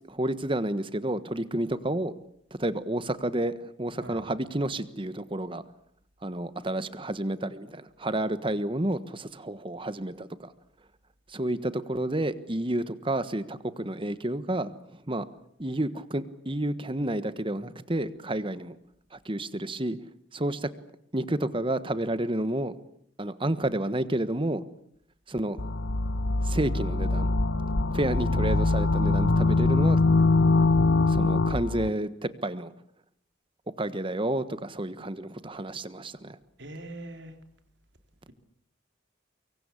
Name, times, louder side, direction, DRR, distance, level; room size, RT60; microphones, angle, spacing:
voice 1, 0.1-2.1 2.6-5.6 6.2-10.5 11.3-15.2 15.6-18.8 19.1-20.0 20.3-20.7 21.1-22.8 23.2-24.6 25.3-25.6 26.4-27.3 27.9-30.0 31.1-32.7 33.8-36.4, right 1 dB, 25° right, 13 dB, 1.3 m, -30 dB
voice 2, 3.9-4.3 36.6-37.4, right 1 dB, 65° right, 6 dB, 3.8 m, -42 dB
sound 1, 25.6-31.9, left 3 dB, 80° left, 1.3 m, -23 dB
24.5 x 23.5 x 8.4 m, 0.69 s
head